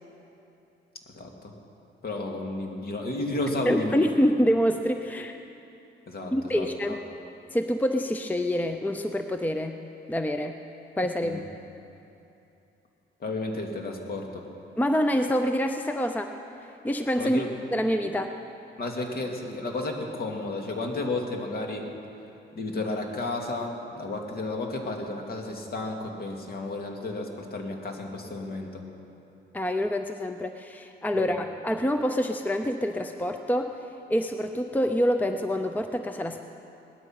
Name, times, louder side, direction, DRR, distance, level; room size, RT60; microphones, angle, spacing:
voice 1, 1.1-1.5 2.0-4.1 6.1-7.0 11.2-11.4 13.2-14.4 17.2-17.6 18.8-21.9 22.5-28.8 31.1-31.4, left 2 dB, 50° left, 2 dB, 2.3 m, -32 dB
voice 2, 3.7-5.4 6.3-7.0 7.5-9.8 10.1-10.6 11.0-11.4 14.8-16.3 16.8-17.4 17.7-18.4 29.5-33.8 34.1-36.4, equal, 10° left, 7 dB, 0.6 m, -26 dB
19.0 x 13.0 x 6.0 m, 2.8 s
cardioid pair, 90°, 20 cm